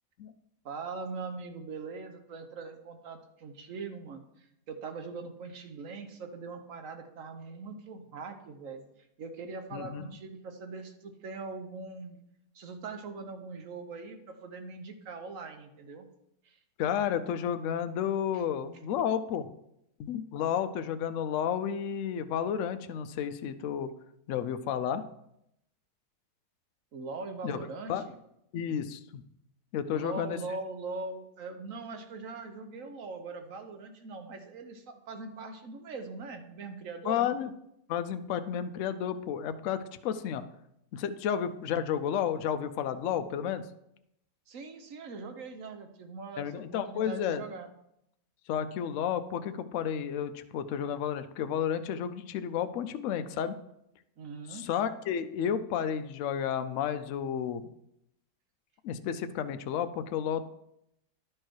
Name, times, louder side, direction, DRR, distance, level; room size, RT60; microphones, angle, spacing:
voice 1, 0.6-8.9 9.2-12.2 12.5-16.1 16.4-16.6 26.9-27.9 29.9-37.2 44.5-47.7 54.2-54.6, right 4 dB, 55° right, 6 dB, 1.1 m, -41 dB
voice 2, 9.7-10.1 16.8-19.5 20.0-23.9 24.3-25.0 27.4-27.6 27.9-28.0 28.5-29.2 29.7-30.4 37.0-37.5 37.9-40.4 40.9-43.6 46.4-47.5 48.5-53.6 54.5-57.7 58.8-60.4, left 8 dB, 80° left, 9 dB, 0.7 m, -31 dB
10.5 x 4.8 x 4.6 m, 0.79 s
omnidirectional pair, 1.9 m